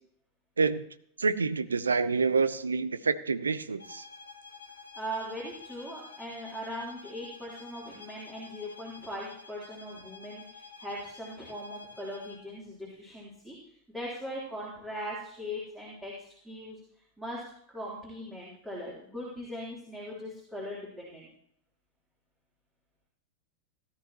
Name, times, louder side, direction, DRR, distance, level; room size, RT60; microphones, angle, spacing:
voice 1, 1.2-4.0, right 4 dB, 75° right, 14 dB, 0.6 m, -27 dB
sound 1, 3.8-12.5, left 4 dB, 80° left, 2.0 m, -49 dB
voice 2, 5.0-16.8 17.2-17.4 17.7-21.3, equal, 5° right, -6 dB, 3.6 m, -40 dB
17.0 x 12.0 x 3.0 m, 0.67 s
figure-of-eight pair, 90°, 0 cm